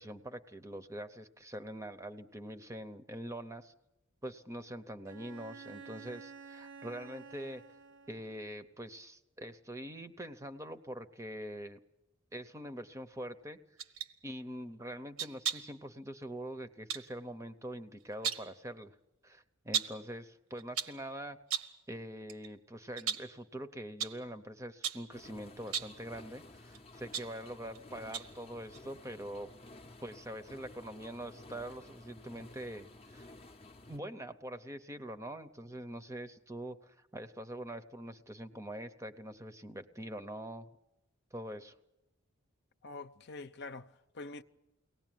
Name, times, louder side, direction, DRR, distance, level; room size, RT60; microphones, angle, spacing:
voice 1, 0.0-3.7 4.2-7.6 8.1-11.8 12.3-13.6 14.2-18.9 19.2-21.4 21.9-29.5 30.0-33.3 33.9-40.7 41.3-41.7, right 1 dB, 15° right, 0.8 m, -44 dB
Bowed string instrument, 5.1-8.6, right 5 dB, 60° right, 0.8 m, -51 dB
sound 1, 13.8-14.1 15.2-15.8 16.9-17.1 18.0-18.6 19.7-20.1 20.6-21.0 21.5-21.8 22.3-22.5 23.0-23.4 24.0-24.2 24.8-25.1 25.6-26.0 26.7-27.8 28.1-28.4 28.7-28.8, right 8 dB, 80° right, 1.3 m, -37 dB
sound 2, 25.1-34.0, left 2 dB, 30° left, 0.8 m, -54 dB
voice 2, 42.8-44.4, left 3 dB, 55° left, 0.8 m, -45 dB
23.5 x 18.0 x 9.2 m
head